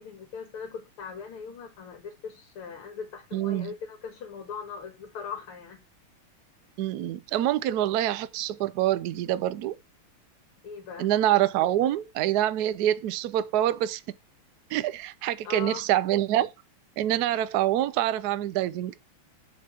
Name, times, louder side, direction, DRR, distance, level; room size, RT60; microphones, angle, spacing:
voice 1, 0.0-5.8 10.6-11.1 15.4-15.9, left 6 dB, 85° left, 2.4 m, -40 dB
voice 2, 3.3-3.7 6.8-9.8 11.0-14.0 14.7-16.5 17.0-18.9, right 13 dB, 90° right, 0.8 m, -26 dB
7.7 x 5.6 x 4.9 m
omnidirectional pair, 2.3 m